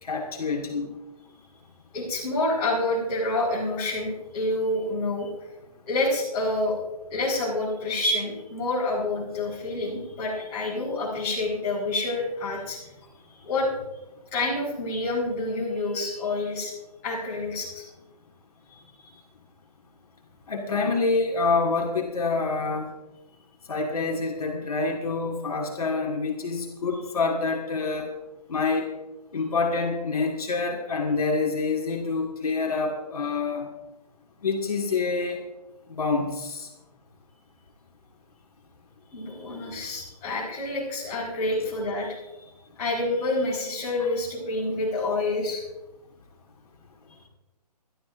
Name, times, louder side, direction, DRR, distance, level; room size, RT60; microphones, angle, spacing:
voice 1, 0.0-0.9 20.5-22.9 23.7-28.1 28.5-28.9 29.3-33.7 34.4-35.4 36.0-36.7, left 4 dB, 60° left, 0 dB, 2.0 m, -27 dB
voice 2, 1.9-5.3 5.9-6.8 7.1-12.8 13.4-13.7 14.3-16.7 17.0-17.8 39.1-42.5 42.8-45.6, left 2 dB, 15° left, -8 dB, 4.4 m, -28 dB
23.0 x 12.0 x 2.6 m, 1.0 s
hypercardioid pair, 175°, 21 cm